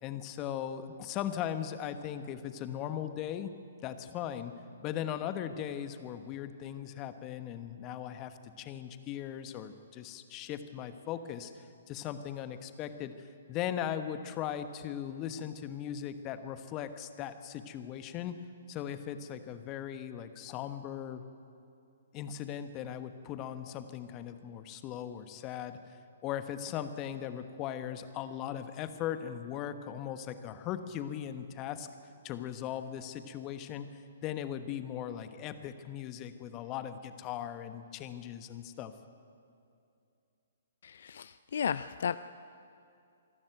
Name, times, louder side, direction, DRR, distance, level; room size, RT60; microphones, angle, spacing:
voice 1, 0.0-3.5 3.8-4.5 4.8-18.3 18.7-21.2 22.1-25.8 26.2-31.9 32.2-38.9, left 10 dB, 30° left, 10 dB, 1.2 m, -38 dB
voice 2, 40.8-42.2, left 7 dB, 60° left, 14 dB, 0.4 m, -34 dB
25.5 x 12.0 x 9.3 m, 2.6 s
figure-of-eight pair, 125°, 0 cm